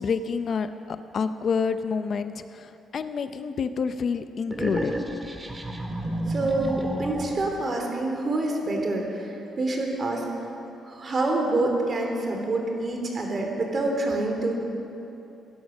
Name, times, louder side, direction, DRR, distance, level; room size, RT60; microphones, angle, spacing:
voice 1, 0.0-4.9, left 5 dB, 55° left, 11 dB, 0.6 m, -28 dB
sound 1, 4.5-7.6, right 1 dB, 15° right, 1.9 m, -31 dB
voice 2, 6.3-10.2 10.9-14.6, right 2 dB, 40° right, 2 dB, 3.0 m, -27 dB
17.0 x 11.0 x 6.3 m, 2.9 s
cardioid pair, 90°, 0 cm